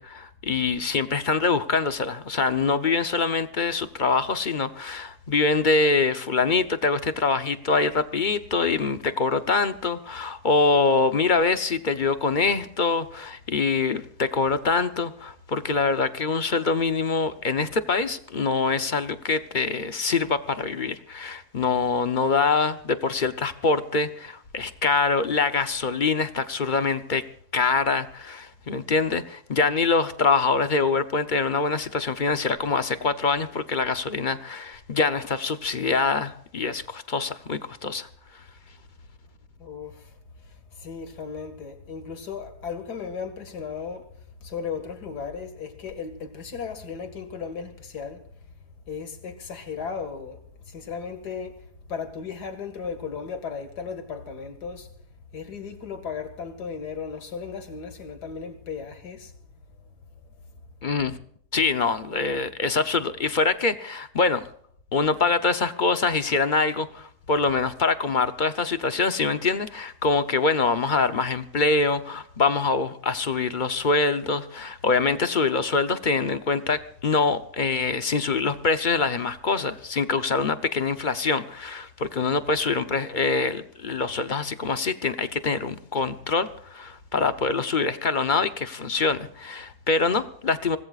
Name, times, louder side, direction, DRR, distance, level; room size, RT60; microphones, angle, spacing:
voice 1, 0.0-27.2 27.5-38.1 60.8-61.2 61.5-64.4 64.9-90.8, left 4 dB, 40° left, 0.8 m, -24 dB
voice 2, 39.6-44.1 44.4-48.2 48.9-54.9 55.3-59.4, left 6 dB, 90° left, 2.5 m, -36 dB
25.0 x 19.0 x 2.4 m
omnidirectional pair, 1.7 m